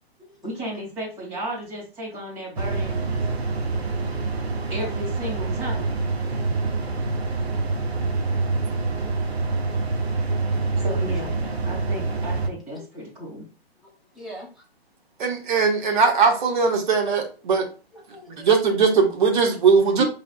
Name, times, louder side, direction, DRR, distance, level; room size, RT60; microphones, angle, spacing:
voice 1, 0.4-3.0 4.7-6.0 10.8-11.4 11.7-13.5 20.0-20.1, right 1 dB, 20° right, -4 dB, 2.4 m, -33 dB
sound 1, 2.6-12.5, right 3 dB, 85° right, 0.9 m, -26 dB
voice 2, 10.4-11.1 11.4-11.7 14.2-14.5 18.1-18.5, right 1 dB, ahead, -6 dB, 0.9 m, -43 dB
voice 3, 15.2-17.7 18.3-20.0, right 5 dB, 50° right, 3 dB, 1.1 m, -20 dB
5.2 x 3.3 x 2.4 m, 0.34 s
figure-of-eight pair, 130°, 31 cm